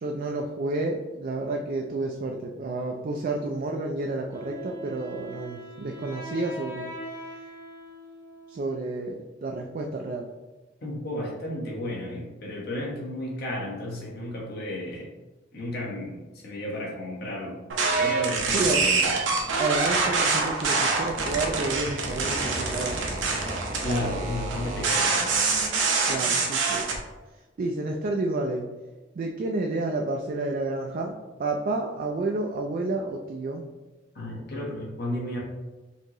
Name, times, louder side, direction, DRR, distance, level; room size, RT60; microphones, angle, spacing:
voice 1, 0.0-6.9 8.5-10.3 18.5-18.8 19.6-23.3 26.0-26.9 27.6-28.7 29.1-33.6, right 2 dB, 45° right, 2 dB, 0.3 m, -30 dB
Wind instrument woodwind instrument, 4.3-9.1, right 1 dB, 20° right, 0.7 m, -41 dB
voice 2, 10.8-15.1 15.5-17.5 18.0-19.2 23.8-25.3 34.1-35.4, left 1 dB, 60° left, -3 dB, 1.2 m, -33 dB
sound 1, 17.7-27.0, right 4 dB, 85° right, 0.7 m, -25 dB
4.4 x 2.8 x 3.0 m, 1.2 s
head